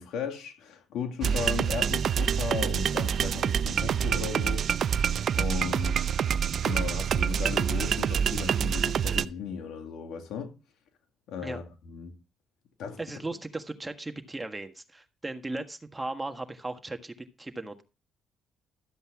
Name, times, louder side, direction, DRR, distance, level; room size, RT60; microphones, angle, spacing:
voice 1, 0.0-4.8 5.4-6.1 6.6-10.5 11.3-12.1 12.8-13.0, left 6 dB, 75° left, 2.0 m, -36 dB
sound 1, 1.2-9.2, right 8 dB, 60° right, 0.5 m, -26 dB
voice 2, 13.0-17.8, right 2 dB, 20° right, 1.5 m, -37 dB
13.0 x 8.0 x 3.6 m
supercardioid pair, 70°, 0 cm